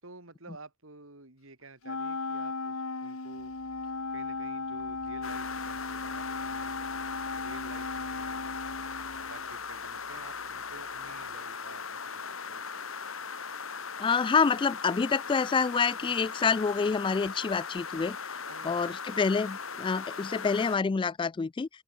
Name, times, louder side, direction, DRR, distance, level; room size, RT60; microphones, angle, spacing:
voice 1, 0.0-3.5 4.1-6.8 7.4-8.6 9.2-12.9 18.5-19.0, right 3 dB, 70° right, 4.1 m, -51 dB
Wind instrument woodwind instrument, 1.8-9.5, left 3 dB, 90° left, 2.1 m, -37 dB
sound 1, 3.3-11.9, right 1 dB, 40° right, 3.4 m, -56 dB
sound 2, 5.2-20.8, left 5 dB, 70° left, 5.1 m, -39 dB
voice 2, 14.0-18.2 18.6-21.7, left 5 dB, 25° left, 0.3 m, -27 dB
open air
head